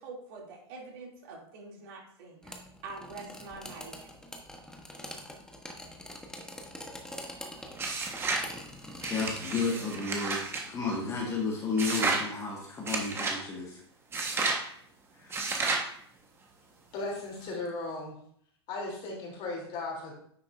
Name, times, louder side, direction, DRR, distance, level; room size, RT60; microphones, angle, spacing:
voice 1, 0.0-3.9, right 3 dB, 55° right, -2 dB, 2.7 m, -45 dB
sound 1, 2.4-9.5, left 1 dB, 5° left, 1.1 m, -44 dB
sound 2, 7.8-8.5 9.0-10.6 11.8-12.3 12.9-13.4 14.1-14.6 15.3-15.9, right 3 dB, 15° right, 1.3 m, -31 dB
voice 2, 9.1-10.4 10.7-13.8 15.2-15.5, left 4 dB, 25° left, -2 dB, 1.6 m, -32 dB
voice 3, 16.9-18.2 18.7-20.1, left 2 dB, 40° left, -1 dB, 3.2 m, -36 dB
9.7 x 5.8 x 2.6 m, 0.65 s
hypercardioid pair, 125°, 14 cm